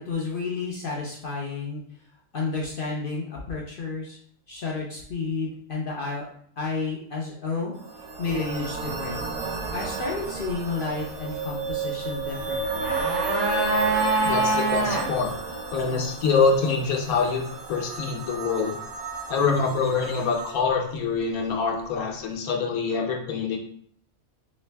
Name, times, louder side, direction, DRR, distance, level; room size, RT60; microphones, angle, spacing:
voice 1, 0.0-1.8 2.3-4.2 4.5-6.3 6.6-7.7 8.2-9.2 9.7-12.8, left 4 dB, 55° left, -2 dB, 0.6 m, -31 dB
sound 1, 7.8-20.5, right 4 dB, 85° right, 1.2 m, -33 dB
sound 2, 12.5-15.1 15.3-15.4, right 2 dB, 60° right, 1.2 m, -24 dB
voice 2, 14.2-15.3 15.7-18.8 19.3-23.6, left 5 dB, 80° left, 0 dB, 1.2 m, -25 dB
3.2 x 3.1 x 3.3 m, 0.62 s
omnidirectional pair, 1.5 m